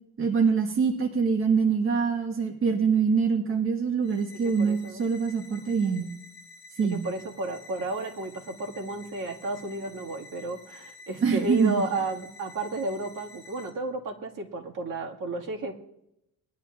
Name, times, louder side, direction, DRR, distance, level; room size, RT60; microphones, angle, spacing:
voice 1, 0.2-6.1 6.8-7.0 11.2-11.8, right 5 dB, 35° right, 2 dB, 1.4 m, -24 dB
sound 1, 4.0-13.7, left 3 dB, 35° left, 2.6 m, -50 dB
voice 2, 4.4-5.0 6.9-15.7, right 2 dB, 55° right, 1 dB, 1.9 m, -33 dB
20.5 x 11.0 x 2.4 m, 0.82 s
cardioid pair, 135°, 37 cm